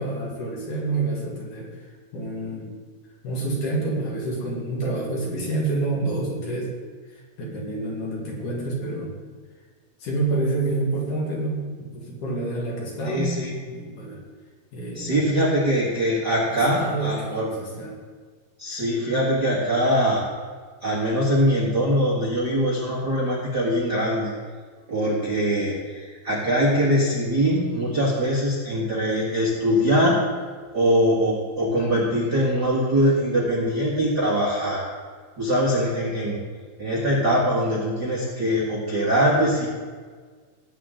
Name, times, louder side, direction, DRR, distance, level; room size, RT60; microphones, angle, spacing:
voice 1, 0.0-2.7 3.2-6.7 7.1-9.2 10.0-13.4 13.7-14.2 14.7-15.3 16.5-17.9 18.7-18.8, right 2 dB, 55° left, -3 dB, 3.6 m, -28 dB
voice 2, 13.0-13.5 14.9-17.5 18.6-20.2 20.8-24.3 24.9-30.2 30.7-34.8 35.4-36.4 36.8-39.7, equal, 45° right, -5 dB, 1.4 m, -22 dB
18.0 x 8.6 x 3.9 m, 1.6 s
omnidirectional pair, 4.8 m